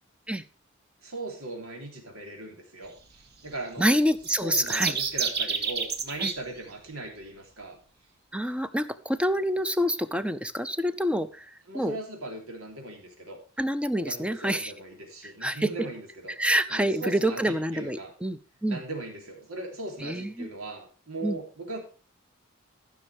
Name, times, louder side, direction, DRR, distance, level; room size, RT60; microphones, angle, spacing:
voice 1, 1.0-4.0 4.4-7.8 11.7-13.4 14.0-16.3 16.7-18.1 18.7-21.8, right 2 dB, 90° right, 1 dB, 3.5 m, -39 dB
voice 2, 3.8-4.9 6.2-6.3 8.3-11.4 11.7-12.0 13.6-14.7 15.4-15.7 16.4-18.8 20.0-20.5 21.2-21.4, equal, 5° right, 12 dB, 0.6 m, -27 dB
sound 1, 4.2-6.3, right 6 dB, 50° right, 1.4 m, -29 dB
14.5 x 6.4 x 4.9 m, 0.36 s
head